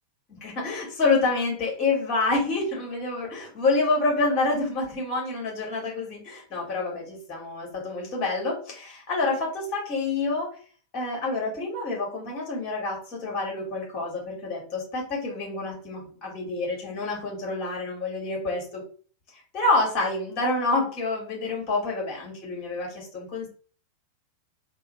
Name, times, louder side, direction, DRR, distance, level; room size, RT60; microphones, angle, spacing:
voice 1, 0.3-10.5 10.9-18.8 19.3-23.5, left 3 dB, 35° left, -1 dB, 1.9 m, -27 dB
3.7 x 2.2 x 4.0 m, 0.42 s
figure-of-eight pair, 90°, 0 cm